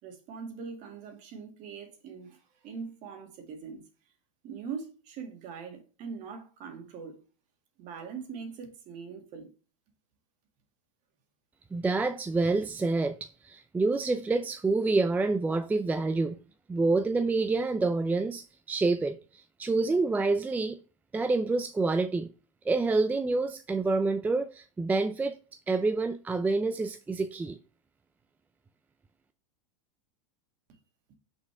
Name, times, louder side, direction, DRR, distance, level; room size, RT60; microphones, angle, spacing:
voice 1, 0.0-3.8 4.4-7.2 7.8-9.5, right 6 dB, 45° right, 2.0 m, -42 dB
voice 2, 11.7-16.4 16.7-20.8 21.1-22.3 22.6-25.3 25.7-27.6, right 3 dB, 10° right, 0.4 m, -27 dB
6.3 x 5.1 x 3.3 m
hypercardioid pair, 110°, 17 cm